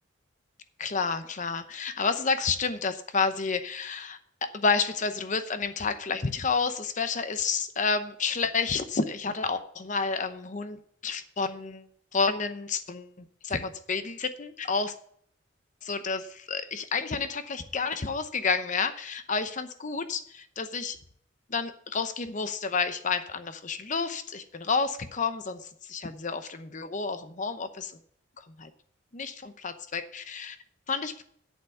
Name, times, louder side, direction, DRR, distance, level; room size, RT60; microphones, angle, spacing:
voice 1, 0.8-11.9 12.1-14.9 15.8-21.0 21.5-27.9 28.4-28.7 29.1-30.6 30.9-31.2, left 4 dB, 40° left, 10 dB, 0.8 m, -30 dB
8.3 x 7.0 x 6.9 m, 0.65 s
head